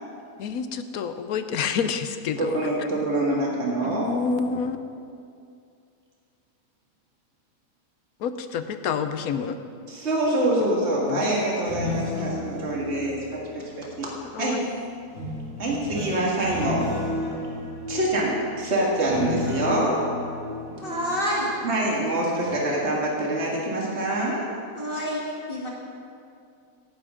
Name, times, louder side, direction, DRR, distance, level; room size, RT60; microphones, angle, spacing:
voice 1, 0.4-2.5 3.8-4.8 8.2-9.6 11.1-11.2 14.3-14.7, left 6 dB, 70° left, 9 dB, 1.2 m, -28 dB
voice 2, 2.4-4.1 9.9-14.1 14.4-14.6 15.6-16.9 17.9-20.0 20.8-20.9 21.6-24.5, right 1 dB, 45° right, -3 dB, 2.3 m, -25 dB
sound 1, 11.5-14.4 15.1-22.1 22.4-22.8, left 2 dB, 55° left, 3.2 m, -33 dB
voice 3, 20.8-21.5 24.7-25.7, equal, 35° left, -5 dB, 1.9 m, -28 dB
17.0 x 12.0 x 3.8 m, 2.4 s
omnidirectional pair, 1.6 m